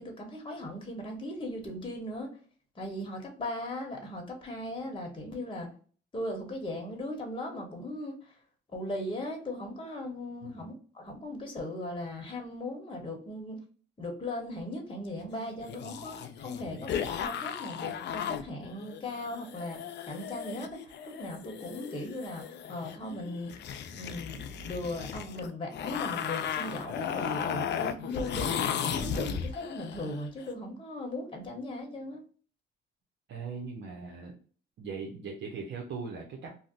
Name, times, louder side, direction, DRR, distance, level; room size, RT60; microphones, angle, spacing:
voice 1, 0.0-2.3 2.8-5.7 6.1-8.1 8.7-13.6 14.0-16.9 17.2-19.8 20.1-22.4 22.7-23.5 23.9-32.2, left 1 dB, 25° left, 2 dB, 1.0 m, -38 dB
sound 1, 15.3-30.3, left 8 dB, 60° left, 0.4 m, -36 dB
voice 2, 33.3-34.4 34.8-36.5, right 5 dB, 70° right, 0 dB, 0.7 m, -40 dB
2.6 x 2.1 x 3.8 m, 0.42 s
cardioid pair, 90°, 20 cm